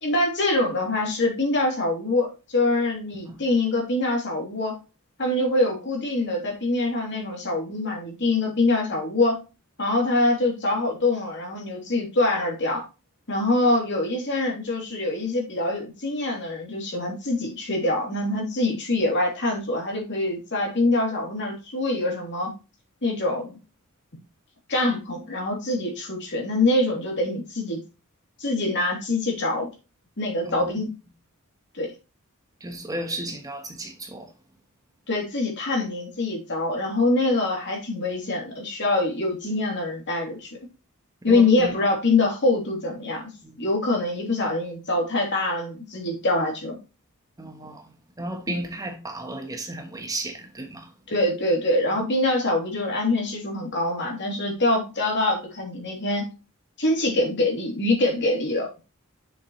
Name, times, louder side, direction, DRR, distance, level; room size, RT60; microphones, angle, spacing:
voice 1, 0.0-4.8 5.2-9.4 9.8-12.8 13.3-22.5 23.0-23.6 24.7-27.8 28.4-29.7 30.2-30.9 31.7-31.9 35.1-40.5 41.2-43.2 43.6-46.8 51.1-56.2 56.8-58.7, left 2 dB, 55° left, 3.1 m, -24 dB
voice 2, 30.4-30.8 32.6-34.3 41.3-41.7 43.4-43.6 47.4-50.9, right 1 dB, 15° right, 1.2 m, -34 dB
7.1 x 7.1 x 3.2 m
head